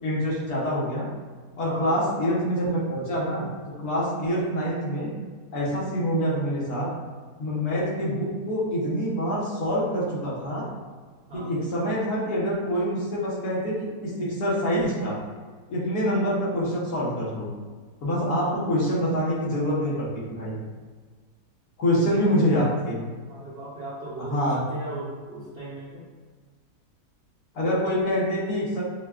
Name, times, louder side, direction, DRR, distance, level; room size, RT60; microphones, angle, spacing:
voice 1, 0.0-1.1 1.6-3.5 3.8-5.1 5.5-6.9 7.4-10.7 11.3-15.2 15.7-17.5 18.0-20.6 21.8-23.0 24.2-24.6 27.5-28.8, equal, 70° left, -6 dB, 1.5 m, -26 dB
voice 2, 1.7-2.1 11.3-11.5 18.3-18.5 21.9-22.6 23.3-26.1, right 1 dB, 50° right, -8 dB, 0.8 m, -38 dB
6.1 x 2.2 x 2.3 m, 1.5 s
omnidirectional pair, 1.7 m